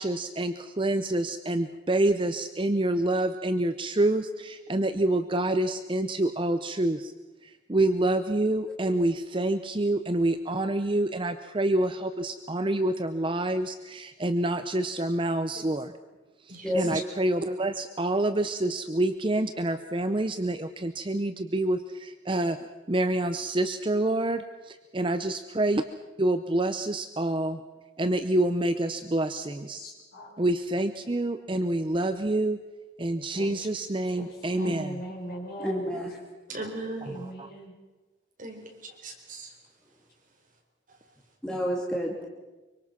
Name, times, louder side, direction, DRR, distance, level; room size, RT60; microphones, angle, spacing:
voice 1, 0.0-7.1 7.4-15.9 16.5-22.6 22.9-25.8 26.2-27.6 28.0-29.8 30.4-32.6 33.0-35.0 37.1-37.5, right 1 dB, 25° right, 9 dB, 0.7 m, -27 dB
voice 2, 16.6-17.0 35.6-36.2 41.4-42.3, equal, 5° left, -2 dB, 2.4 m, -29 dB
voice 3, 29.7-30.3 33.3-33.7 34.2-35.8 37.0-37.7, right 1 dB, 50° left, 0 dB, 5.7 m, -40 dB
voice 4, 36.5-37.1 38.4-39.5, right 2 dB, 40° right, 1 dB, 4.4 m, -38 dB
25.0 x 24.5 x 6.0 m, 1.2 s
head